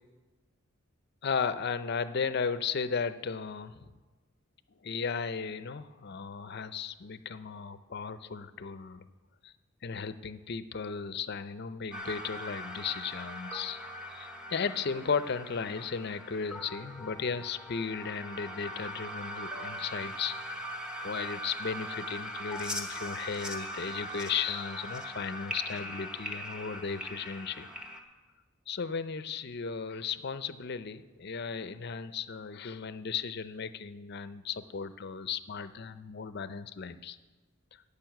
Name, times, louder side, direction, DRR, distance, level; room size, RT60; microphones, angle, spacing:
voice 1, 1.2-3.9 4.8-9.1 9.4-9.5 9.8-13.8 14.1-20.3 20.7-27.7 28.7-37.2, left 6 dB, 50° left, 13 dB, 0.5 m, -35 dB
sound 1, 11.9-28.0, equal, 5° right, 1.0 m, -40 dB
10.5 x 6.9 x 9.1 m, 1.3 s
head